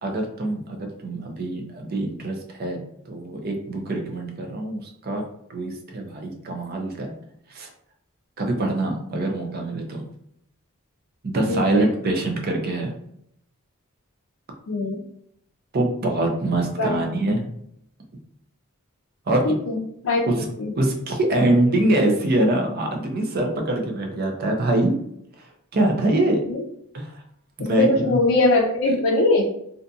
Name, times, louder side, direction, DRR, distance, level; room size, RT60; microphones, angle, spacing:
voice 1, 0.0-5.2 5.5-7.2 7.5-7.7 8.4-10.0 11.2-12.9 15.7-17.5 19.3-19.6 20.3-20.5 20.8-25.0 25.4-25.5 25.7-26.4 26.9-27.2 27.6-28.2, right 1 dB, 45° right, 2 dB, 0.5 m, -24 dB
voice 2, 11.5-11.9 14.7-15.0 16.8-17.0 19.5-19.8 20.0-20.7 26.5-26.6 27.8-29.4, left 2 dB, 80° left, -2 dB, 0.4 m, -21 dB
2.6 x 2.6 x 2.3 m, 0.72 s
head